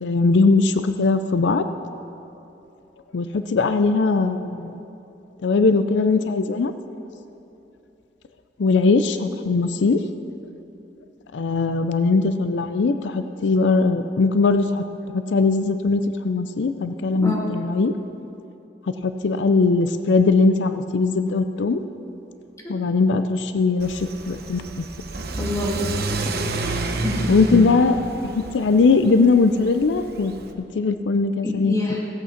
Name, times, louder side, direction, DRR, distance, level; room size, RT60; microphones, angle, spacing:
voice 1, 0.0-1.6 3.1-4.8 5.4-6.7 8.6-10.0 11.3-17.9 18.9-21.8 22.7-24.9 27.3-28.0 28.2-31.7, left 3 dB, 85° left, 10 dB, 0.5 m, -20 dB
voice 2, 17.1-17.5 25.4-25.9 26.2-26.3 27.0-27.6 31.7-32.0, left 1 dB, 20° left, -4 dB, 2.2 m, -26 dB
Car / Accelerating revving vroom, 23.8-30.5, right 3 dB, 60° right, 0.9 m, -30 dB
16.0 x 8.3 x 5.8 m, 2.9 s
head